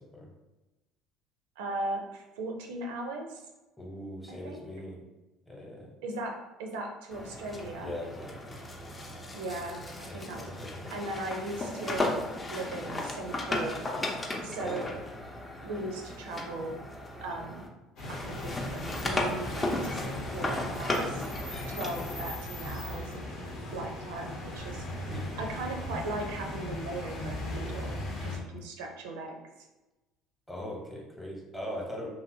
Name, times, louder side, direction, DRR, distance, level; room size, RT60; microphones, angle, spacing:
voice 1, 1.6-3.4 4.3-4.6 6.0-7.9 9.3-10.5 10.9-13.8 14.4-14.9 15.6-16.8 17.2-17.6 18.1-21.2 21.7-23.3 23.7-25.1 25.4-29.4, right 2 dB, 80° right, 2 dB, 0.5 m, -38 dB
voice 2, 3.8-5.0 5.5-5.9 7.8-8.6 10.1-10.9 14.6-14.9 23.2-23.9 25.1-25.4 30.5-32.1, left 1 dB, 10° left, -2 dB, 0.9 m, -41 dB
sound 1, 7.1-17.7 18.0-22.3, left 1 dB, 25° left, 0.6 m, -35 dB
sound 2, 18.0-28.4, left 1 dB, 65° left, 0.9 m, -38 dB
2.8 x 2.7 x 2.7 m, 1.1 s
hypercardioid pair, 70°, 0 cm